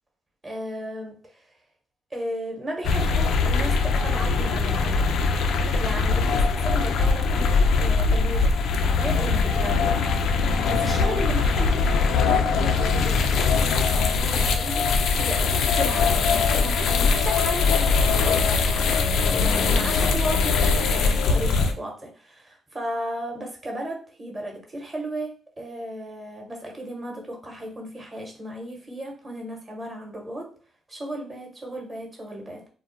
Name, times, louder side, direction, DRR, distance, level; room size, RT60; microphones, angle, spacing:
voice 1, 0.4-1.4 2.1-5.1 5.8-8.5 9.0-10.0 10.7-13.5 13.9-19.0 19.3-30.5 30.9-32.7, right 1 dB, 30° right, 1 dB, 1.0 m, -35 dB
sound 1, 2.8-21.7, left 4 dB, 75° left, 0.4 m, -21 dB
2.3 x 2.1 x 3.8 m, 0.40 s
cardioid pair, 90°, 0 cm